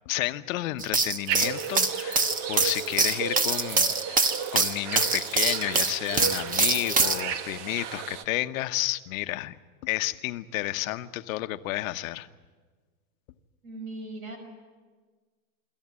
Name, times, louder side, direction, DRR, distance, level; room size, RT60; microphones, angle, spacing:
voice 1, 0.1-12.3, left 16 dB, 70° left, 10 dB, 1.1 m, -31 dB
sound 1, 0.8-7.2, right 4 dB, 20° right, 1.2 m, -24 dB
sound 2, 1.3-8.2, right 7 dB, 50° right, 1.4 m, -34 dB
voice 2, 13.6-14.4, right 2 dB, 85° right, 5 dB, 6.2 m, -38 dB
25.5 x 14.0 x 9.8 m, 1.4 s
supercardioid pair, 130°, 42 cm